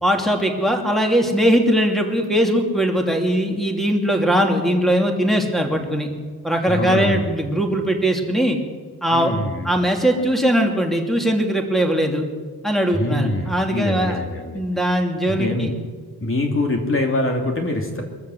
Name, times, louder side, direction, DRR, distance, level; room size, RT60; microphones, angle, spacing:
voice 1, 0.0-6.1 6.4-8.6 9.0-9.3 9.6-12.3 12.6-14.2 14.5-15.7, equal, ahead, 2 dB, 2.8 m, -20 dB
voice 2, 6.7-7.3 9.1-9.7 12.9-14.6 15.2-15.7 16.2-18.0, left 1 dB, 35° left, 2 dB, 2.7 m, -24 dB
23.5 x 14.0 x 7.8 m, 1.5 s
wide cardioid pair, 145°, 39 cm